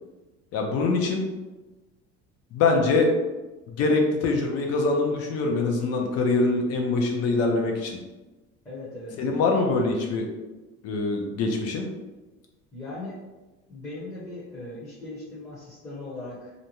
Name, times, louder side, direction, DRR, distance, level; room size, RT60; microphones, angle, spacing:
voice 1, 0.5-1.3 2.5-3.1 3.7-8.0 9.2-10.3 10.8-11.9, left 3 dB, 50° left, 2 dB, 0.6 m, -24 dB
voice 2, 8.6-9.2 12.7-13.2 13.7-16.5, left 2 dB, 10° left, -9 dB, 0.7 m, -38 dB
2.5 x 2.1 x 2.9 m, 1.1 s
cardioid pair, 135°, 31 cm